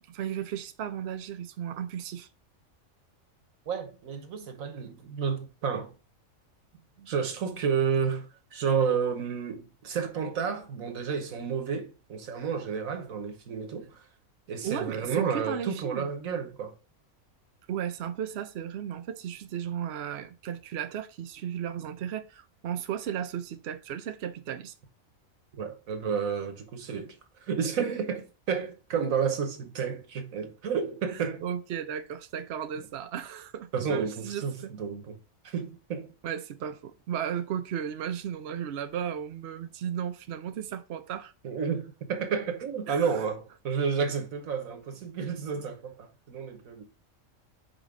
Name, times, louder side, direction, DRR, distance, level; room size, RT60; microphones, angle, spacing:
voice 1, 0.0-2.3 7.0-7.1 14.6-16.1 17.7-24.7 31.1-34.7 36.2-41.3 42.9-43.1, right 9 dB, 60° right, 0.8 m, -35 dB
voice 2, 3.7-5.9 7.1-14.1 14.5-16.7 25.5-31.4 33.7-35.2 35.4-36.1 41.4-46.8, right 6 dB, 80° right, 1.5 m, -31 dB
5.3 x 4.9 x 3.7 m
omnidirectional pair, 1.4 m